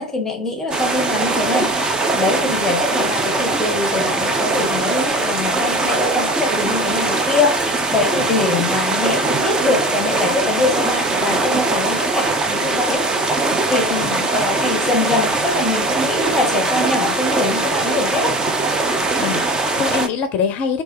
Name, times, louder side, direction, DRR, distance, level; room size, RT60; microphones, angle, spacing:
voice 1, 0.0-13.1 13.7-13.9 14.3-18.4, left 2 dB, 10° left, 1.1 m, -23 dB
sound 1, 0.7-20.1, right 3 dB, 15° right, 0.6 m, -21 dB
voice 2, 8.3-8.6 13.9-14.3 19.2-20.8, left 6 dB, 30° left, 0.6 m, -24 dB
4.5 x 2.8 x 3.1 m
figure-of-eight pair, 95°, 5 cm